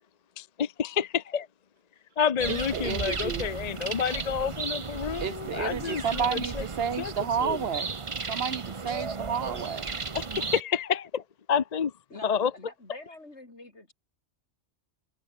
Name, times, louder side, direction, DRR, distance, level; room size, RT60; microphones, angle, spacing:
voice 1, 0.4-1.1 1.3-1.5 2.2-6.6 7.0-7.1 7.4-7.6 10.1-11.9 12.2-12.5, left 7 dB, 40° left, 0.7 m, -29 dB
sound 1, 2.4-10.6, right 4 dB, 30° right, 0.9 m, -35 dB
voice 2, 2.5-3.5 5.2-7.9 8.3-9.9, right 7 dB, 60° right, 1.1 m, -31 dB
voice 3, 12.1-13.9, left 2 dB, 75° left, 5.0 m, -45 dB
omnidirectional pair, 1.2 m